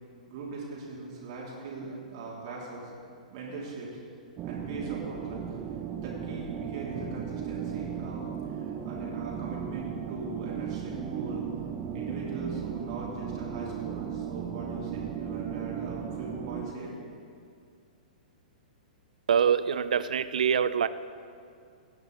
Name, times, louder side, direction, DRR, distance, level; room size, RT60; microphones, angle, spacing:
voice 1, 0.3-2.9 3.3-4.0 4.4-5.6 5.9-11.4 11.9-16.9, right 3 dB, 50° right, -4 dB, 2.8 m, -40 dB
sound 1, 4.4-16.7, right 8 dB, 30° right, 0.8 m, -36 dB
voice 2, 19.3-20.9, right 7 dB, 65° right, 15 dB, 0.4 m, -24 dB
17.0 x 9.5 x 3.9 m, 2.3 s
figure-of-eight pair, 110°, 4 cm